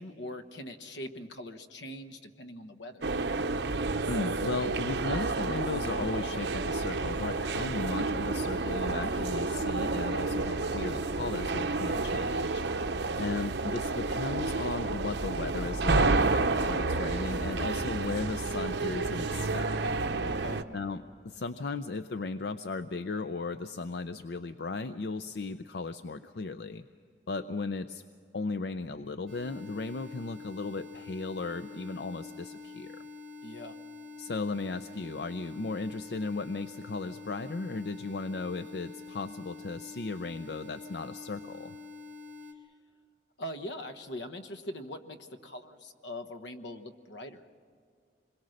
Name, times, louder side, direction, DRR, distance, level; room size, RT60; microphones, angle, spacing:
voice 1, 0.0-3.0 13.0-13.2 20.2-20.6 33.4-33.8 43.4-47.4, left 1 dB, 80° left, 8 dB, 1.2 m, -42 dB
sound 1, 3.0-20.6, right 3 dB, 75° right, 0.8 m, -30 dB
voice 2, 4.1-12.8 13.2-19.9 20.7-26.8 27.3-28.0 28.3-33.0 34.2-41.7, left 3 dB, 65° left, 11 dB, 0.5 m, -36 dB
sound 2, 29.3-42.5, left 4 dB, 40° right, 2.6 m, -46 dB
27.0 x 21.5 x 6.5 m, 2.2 s
head